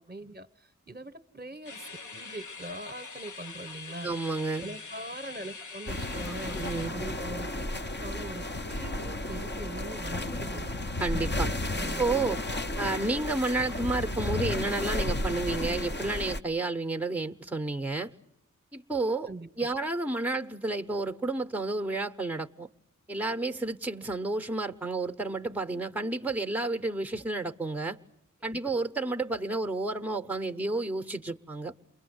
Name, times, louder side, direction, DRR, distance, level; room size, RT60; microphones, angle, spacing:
voice 1, 0.0-4.1 4.6-6.6 6.9-7.7 8.0-10.7 11.7-12.0 19.2-19.7, right 2 dB, 30° right, 1.0 m, -42 dB
sound 1, 1.6-6.9, left 4 dB, 70° left, 1.0 m, -43 dB
voice 2, 4.0-4.7 6.5-6.9 11.0-11.5 11.8-12.4 12.8-18.1 18.7-19.3 19.6-22.7 23.1-28.0 28.4-31.7, right 2 dB, 5° right, 0.9 m, -31 dB
sound 2, 5.9-16.4, left 1 dB, 35° left, 0.9 m, -33 dB
28.5 x 22.0 x 7.9 m
wide cardioid pair, 45°, 31 cm